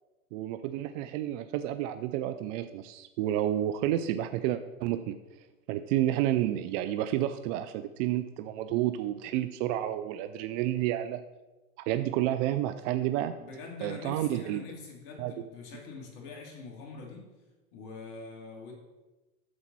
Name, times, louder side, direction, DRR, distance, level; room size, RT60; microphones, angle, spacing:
voice 1, 0.3-5.2 5.7-11.2 11.9-13.3 13.8-14.6 15.2-15.3, right 13 dB, 55° right, 10 dB, 0.7 m, -30 dB
voice 2, 13.4-17.2 17.7-18.7, left 4 dB, 55° left, 0 dB, 3.2 m, -44 dB
9.5 x 7.3 x 4.2 m, 1.1 s
hypercardioid pair, 95°, 44 cm